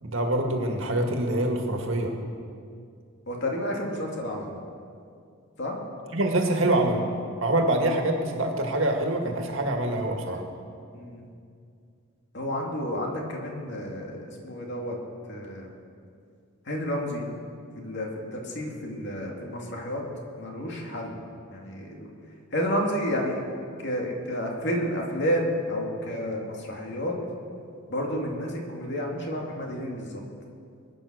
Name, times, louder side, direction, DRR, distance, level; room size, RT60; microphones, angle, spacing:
voice 1, 0.0-2.1 6.1-7.0 7.4-10.4, right 1 dB, 65° right, 2 dB, 2.0 m, -25 dB
voice 2, 3.3-4.5 5.6-5.8 10.9-11.2 12.3-15.0 15.3-15.7 16.7-17.2 17.7-20.0 20.4-21.2 21.5-22.1 22.5-23.4 23.8-27.2 27.9-30.2, equal, 55° left, 0 dB, 2.6 m, -30 dB
21.5 x 9.4 x 6.5 m, 2.3 s
head